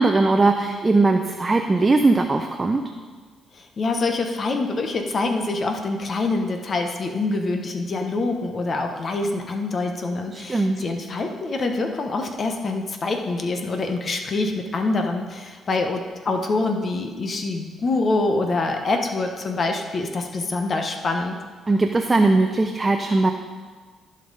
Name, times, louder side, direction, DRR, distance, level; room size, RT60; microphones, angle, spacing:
voice 1, 0.0-2.8 10.3-10.8 21.7-23.3, right 3 dB, 25° right, 5 dB, 0.6 m, -19 dB
voice 2, 3.5-21.4, left 3 dB, 45° left, 4 dB, 1.0 m, -25 dB
14.5 x 5.4 x 4.1 m, 1.5 s
cardioid pair, 90°, 0 cm